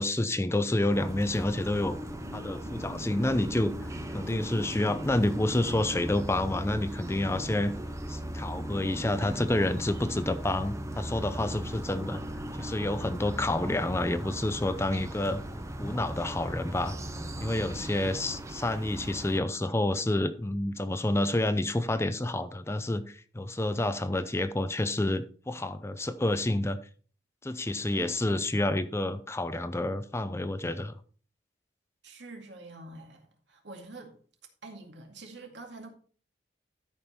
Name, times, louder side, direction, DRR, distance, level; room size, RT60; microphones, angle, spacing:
voice 1, 0.0-1.9 2.3-3.7 4.1-7.7 8.1-12.2 12.6-15.4 15.8-17.0 17.4-26.8 27.4-31.0, left 1 dB, 15° left, 0.5 m, -29 dB
sound 1, 0.9-19.4, right 1 dB, 15° right, 0.8 m, -38 dB
voice 2, 32.0-34.1 34.6-35.9, right 2 dB, 75° right, 2.2 m, -46 dB
13.0 x 5.3 x 4.3 m
head